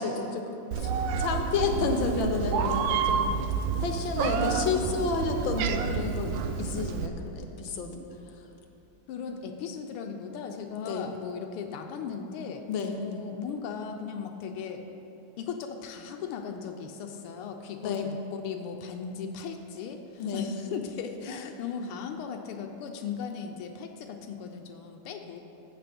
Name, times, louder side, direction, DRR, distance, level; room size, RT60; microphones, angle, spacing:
voice 1, 0.0-0.9 1.2-3.3 3.6-7.9 8.3-8.5 10.9-11.1 12.7-13.0 17.8-18.1 20.2-20.5, left 4 dB, 70° left, 4 dB, 1.5 m, -31 dB
Meow, 0.7-7.1, right 6 dB, 75° right, 1.1 m, -29 dB
voice 2, 1.8-2.2 4.3-4.9 9.1-12.7 13.0-14.8 15.4-25.4, left 6 dB, 85° left, 4 dB, 1.6 m, -37 dB
15.0 x 8.3 x 3.5 m, 2.9 s
omnidirectional pair, 2.4 m